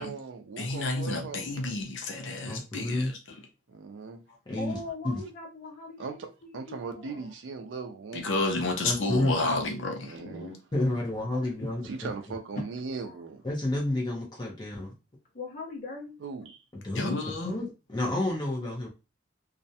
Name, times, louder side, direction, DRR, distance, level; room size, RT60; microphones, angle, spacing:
voice 1, 0.0-1.5 3.7-4.2 6.0-8.3 10.0-10.5 11.8-13.4 16.2-16.6, right 4 dB, 85° right, 0.4 m, -39 dB
voice 2, 0.6-3.1 8.1-10.2 16.9-17.6, left 2 dB, 85° left, 0.6 m, -30 dB
voice 3, 2.5-3.1 4.5-4.8 5.0-5.2 8.8-9.3 10.7-12.1 13.4-14.9 16.7-18.9, left 1 dB, 25° left, 0.6 m, -30 dB
voice 4, 4.3-7.3 10.1-12.0 13.0-13.2 15.3-16.2, left 2 dB, 45° left, 0.9 m, -42 dB
2.4 x 2.1 x 2.7 m
head